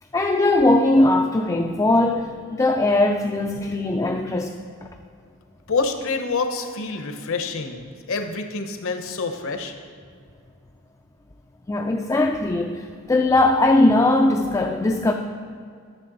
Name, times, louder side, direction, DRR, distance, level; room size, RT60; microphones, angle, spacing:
voice 1, 0.1-4.5 11.7-15.1, left 2 dB, 15° left, 2 dB, 0.3 m, -19 dB
voice 2, 5.7-9.7, left 4 dB, 60° left, 6 dB, 0.8 m, -27 dB
11.5 x 6.7 x 3.9 m, 2.2 s
head